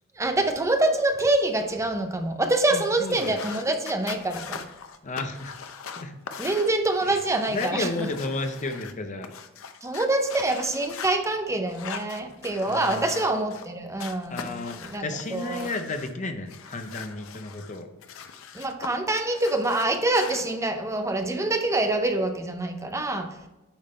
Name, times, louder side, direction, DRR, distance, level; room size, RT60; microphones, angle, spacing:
voice 1, 0.1-4.6 6.4-8.1 9.8-15.7 18.5-23.4, right 2 dB, 15° right, 6 dB, 0.6 m, -26 dB
voice 2, 2.7-3.4 5.0-5.5 5.9-6.2 7.1-7.2 7.5-9.3 12.7-13.1 14.3-17.9, left 2 dB, 35° left, 7 dB, 0.6 m, -33 dB
sound 1, 3.0-11.1 11.7-13.7 14.0-16.1 16.5-18.9 19.2-20.4, left 6 dB, 90° left, 0.6 m, -41 dB
8.9 x 3.6 x 4.3 m, 1.0 s
head